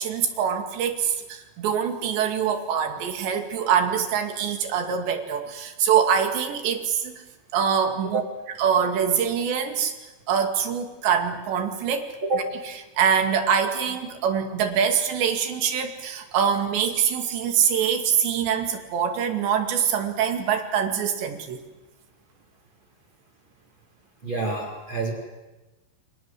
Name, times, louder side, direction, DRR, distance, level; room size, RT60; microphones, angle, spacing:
voice 1, 0.0-7.1 7.5-8.2 8.6-9.9 10.3-12.1 12.7-21.6, right 7 dB, 65° right, 5 dB, 4.3 m, -24 dB
voice 2, 24.2-25.1, right 3 dB, 25° right, 3 dB, 3.4 m, -27 dB
30.0 x 25.5 x 7.7 m, 1.1 s
omnidirectional pair, 5.9 m